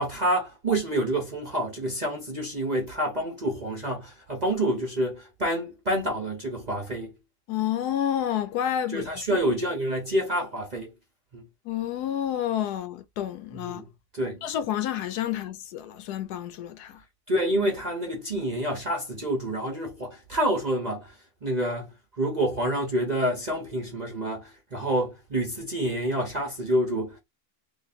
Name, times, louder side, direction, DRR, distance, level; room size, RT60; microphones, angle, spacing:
voice 1, 0.0-7.1 8.9-10.9 11.3-11.5 13.5-13.9 14.1-14.5 17.3-27.2, right 1 dB, 40° right, 0.7 m, -28 dB
voice 2, 7.5-9.1 11.7-13.8 14.4-17.0, left 10 dB, 75° left, 1.1 m, -29 dB
3.1 x 2.6 x 4.0 m
omnidirectional pair, 1.7 m